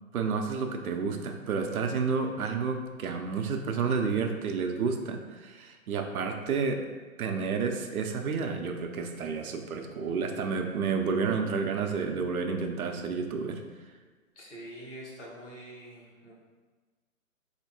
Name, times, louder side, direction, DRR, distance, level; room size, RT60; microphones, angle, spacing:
voice 1, 0.1-6.8 7.2-13.6, right 5 dB, 85° right, 4 dB, 0.6 m, -30 dB
voice 2, 14.3-16.3, right 1 dB, 55° left, -5 dB, 1.3 m, -45 dB
3.4 x 2.8 x 2.7 m, 1.3 s
hypercardioid pair, 145°, 42 cm